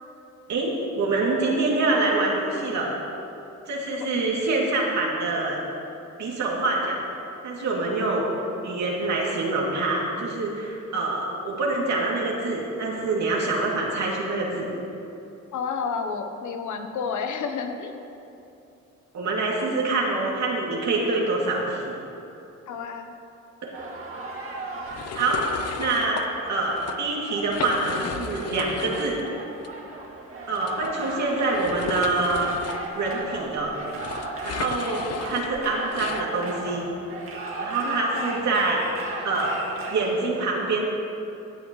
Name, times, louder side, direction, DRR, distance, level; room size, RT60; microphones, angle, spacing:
voice 1, 0.5-3.0 3.7-5.6 6.2-7.0 7.4-8.2 8.6-14.7 19.1-22.0 23.6-23.9 25.1-25.4 25.8-26.2 26.5-29.2 30.5-32.5 32.9-33.7 34.4-36.8 37.6-38.8 39.2-39.5 39.9-40.8, right 3 dB, 65° right, -3 dB, 2.8 m, -25 dB
voice 2, 15.5-17.9 22.7-23.1 37.8-38.3, left 5 dB, 75° left, 6 dB, 1.1 m, -31 dB
sound 1, 23.7-40.2, right 2 dB, 45° right, 2.1 m, -36 dB
sound 2, 24.9-26.3 26.7-27.0 27.4-29.3 29.6-29.7 30.6-36.3, left 7 dB, 55° left, 0.7 m, -35 dB
16.0 x 10.5 x 3.2 m, 2.8 s
cardioid pair, 90°, 30 cm